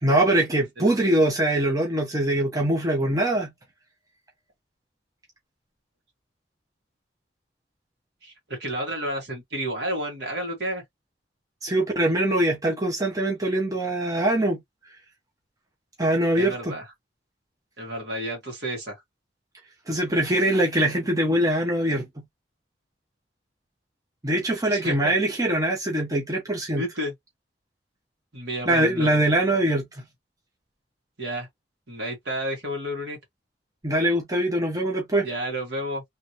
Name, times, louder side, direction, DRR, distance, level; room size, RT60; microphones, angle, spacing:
voice 1, 0.0-3.5 11.6-14.6 16.0-16.8 19.9-22.1 24.2-26.8 28.7-29.9 33.8-35.3, right 1 dB, 20° right, 0.9 m, -23 dB
voice 2, 8.2-10.8 16.4-16.8 17.8-19.0 24.7-25.1 26.8-27.1 28.3-29.2 31.2-31.5 31.9-33.2 35.2-36.0, right 1 dB, 65° right, 1.9 m, -31 dB
3.2 x 3.0 x 2.7 m
head